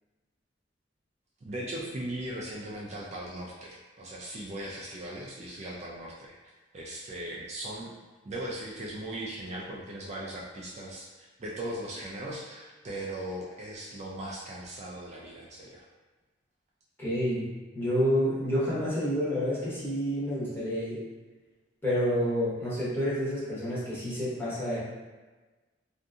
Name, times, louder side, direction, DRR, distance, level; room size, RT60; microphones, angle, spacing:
voice 1, 1.4-6.4 6.7-8.0 8.2-15.8, right 1 dB, 35° right, -4 dB, 0.3 m, -38 dB
voice 2, 17.0-21.0 21.8-24.8, equal, 10° left, -10 dB, 0.8 m, -29 dB
2.6 x 2.5 x 2.3 m, 1.3 s
head